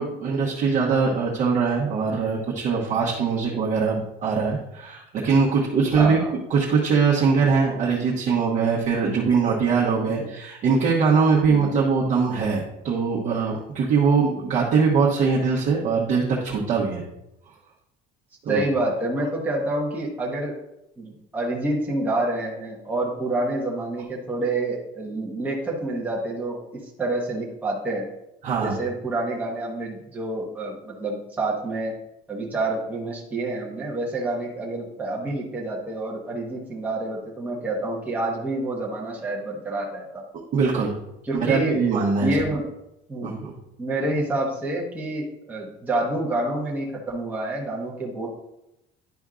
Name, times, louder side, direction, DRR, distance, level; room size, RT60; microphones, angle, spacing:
voice 1, 0.0-6.2 6.5-17.0 18.4-18.6 28.4-28.8 40.5-41.0 41.3-42.4 43.2-43.5, right 5 dB, 40° right, -5 dB, 1.1 m, -22 dB
voice 2, 6.0-6.3 10.1-10.2 18.5-20.5 21.0-28.1 28.6-31.9 32.3-40.2 41.2-41.8 42.2-42.6 43.1-43.4 43.8-48.3, right 2 dB, 10° right, -4 dB, 1.1 m, -28 dB
10.5 x 5.2 x 2.4 m, 0.87 s
cardioid pair, 175°, 19 cm